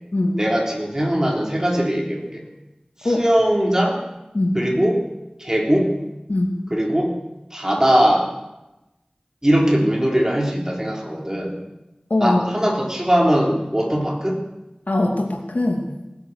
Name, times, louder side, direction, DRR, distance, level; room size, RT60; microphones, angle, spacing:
voice 1, 0.4-2.4 3.0-4.0 4.5-5.0 5.4-5.9 6.7-7.1 7.5-8.3 9.4-11.5 12.2-14.4, equal, 20° right, 0 dB, 3.5 m, -20 dB
voice 2, 12.1-12.4 14.9-15.9, left 2 dB, 85° left, 1 dB, 2.6 m, -21 dB
19.0 x 9.7 x 7.9 m, 0.99 s
wide cardioid pair, 40°, 3 cm